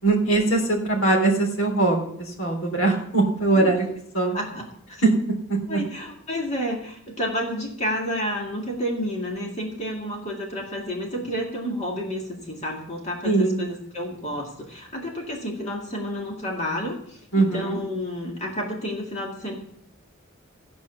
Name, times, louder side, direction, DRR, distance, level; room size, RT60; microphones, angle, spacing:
voice 1, 0.0-3.8 4.1-4.4 5.5-5.8 13.2-13.6 17.3-17.8, right 2 dB, 70° left, -1 dB, 3.3 m, -21 dB
voice 2, 4.3-5.0 5.7-19.6, equal, 30° left, -1 dB, 2.2 m, -30 dB
15.5 x 5.2 x 7.0 m, 0.66 s
head